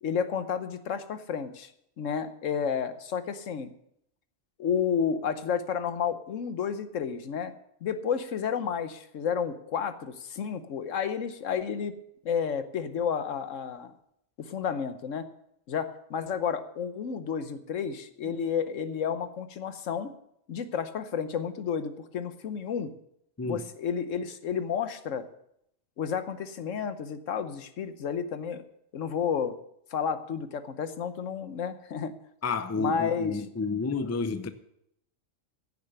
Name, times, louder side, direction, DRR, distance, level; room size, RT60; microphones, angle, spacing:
voice 1, 0.0-1.7 2.0-3.7 4.6-7.5 7.8-11.9 12.2-13.9 14.4-15.3 15.7-20.1 20.5-22.9 23.4-25.3 26.0-28.6 28.9-29.6 29.9-32.1 32.8-33.3, left 7 dB, 75° left, 1.2 m, -31 dB
voice 2, 32.4-34.5, left 4 dB, 20° left, 0.4 m, -30 dB
15.0 x 6.8 x 6.8 m
omnidirectional pair, 1.3 m